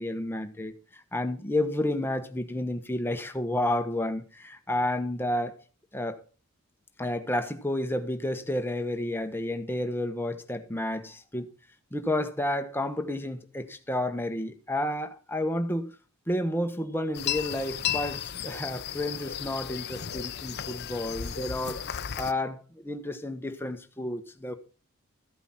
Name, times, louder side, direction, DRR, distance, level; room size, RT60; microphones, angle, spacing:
voice 1, 0.0-5.5 5.9-6.2 7.0-11.5 11.9-15.9 16.3-24.6, left 1 dB, 10° left, 1.2 m, -31 dB
sound 1, 17.1-22.3, left 9 dB, 50° left, 0.7 m, -34 dB
14.5 x 8.1 x 5.7 m
head